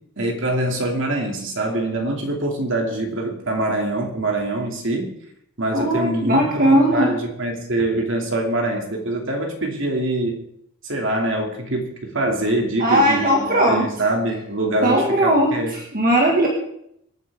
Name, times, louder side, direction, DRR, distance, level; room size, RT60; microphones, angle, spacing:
voice 1, 0.2-5.1 5.6-10.4 10.8-15.7, right 1 dB, 55° right, 1 dB, 2.7 m, -24 dB
voice 2, 5.7-7.2 12.8-13.9 14.8-16.5, equal, 40° right, -1 dB, 2.0 m, -18 dB
25.5 x 9.4 x 3.7 m, 0.74 s
head